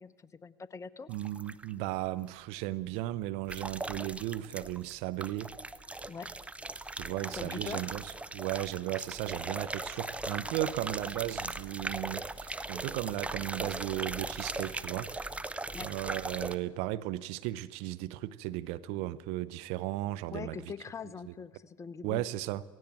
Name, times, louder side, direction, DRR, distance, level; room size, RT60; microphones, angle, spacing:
voice 1, 0.0-1.1 6.1-6.4 7.3-7.9 15.7-15.9 20.3-22.2, left 6 dB, 25° left, 0.9 m, -43 dB
sound 1, 1.1-1.7 3.5-4.9 5.2-16.5, right 2 dB, 10° right, 0.9 m, -39 dB
voice 2, 1.1-5.6 6.9-15.2 15.8-20.7 21.3-21.4 22.0-22.6, right 15 dB, 65° right, 0.8 m, -35 dB
17.0 x 17.0 x 8.9 m
hypercardioid pair, 80°, 12 cm